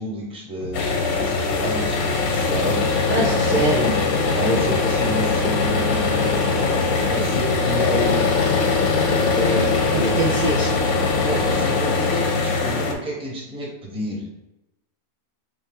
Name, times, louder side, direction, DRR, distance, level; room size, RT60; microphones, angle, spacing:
voice 1, 0.0-3.1 3.4-3.9 4.4-6.4 7.1-8.3 9.3-10.2 11.2-14.4, equal, 5° right, -3 dB, 0.7 m, -29 dB
sound 1, 0.6-11.6, equal, 60° left, 0.7 m, -37 dB
sound 2, 0.7-12.9, left 4 dB, 90° left, 1.1 m, -21 dB
voice 2, 3.1-3.9 9.9-10.7 11.5-11.6, right 1 dB, 55° right, -2 dB, 0.6 m, -24 dB
3.7 x 2.8 x 3.4 m, 0.94 s
omnidirectional pair, 1.5 m